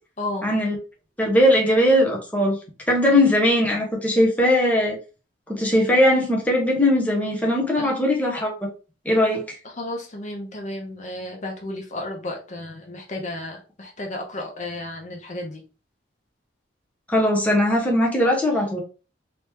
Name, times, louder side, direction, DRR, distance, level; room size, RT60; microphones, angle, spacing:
voice 1, 0.4-0.8 1.2-2.6 2.9-5.0 5.5-8.5 9.0-9.6 17.1-18.8, left 1 dB, 10° left, -2 dB, 0.8 m, -19 dB
voice 2, 9.8-15.6, left 1 dB, 40° left, 1 dB, 0.7 m, -33 dB
3.0 x 2.9 x 3.4 m, 0.34 s
head